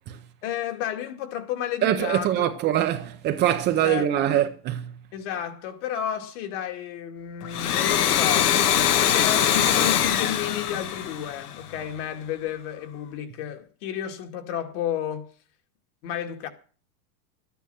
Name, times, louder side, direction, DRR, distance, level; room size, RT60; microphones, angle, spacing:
voice 1, 0.4-2.5 3.8-4.5 5.1-15.3 16.0-16.5, left 10 dB, 55° left, 2.2 m, -32 dB
voice 2, 1.8-4.9, right 11 dB, 25° right, 0.6 m, -23 dB
Domestic sounds home sounds, 7.4-11.9, left 10 dB, 85° left, 1.5 m, -22 dB
12.5 x 9.2 x 6.9 m
supercardioid pair, 155°, 45 cm